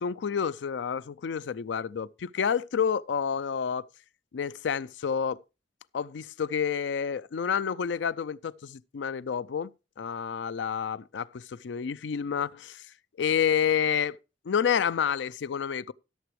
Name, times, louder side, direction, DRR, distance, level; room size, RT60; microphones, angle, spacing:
voice 1, 0.0-3.9 4.3-5.4 5.9-12.9 13.2-14.2 14.5-15.9, left 7 dB, 80° left, 0.4 m, -29 dB
16.0 x 6.9 x 3.1 m
head